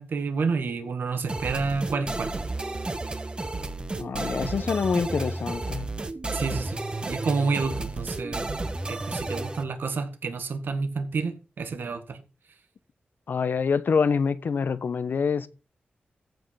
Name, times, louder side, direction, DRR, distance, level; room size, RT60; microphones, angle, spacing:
voice 1, 0.0-2.3 6.3-6.8 7.1-8.5 8.9-12.2, right 4 dB, 80° right, 1.7 m, -29 dB
sound 1, 1.3-9.6, right 2 dB, 30° right, 1.3 m, -32 dB
voice 2, 4.0-5.9 13.3-15.5, left 5 dB, 75° left, 1.0 m, -26 dB
14.5 x 5.7 x 5.6 m
wide cardioid pair, 85°, 3 cm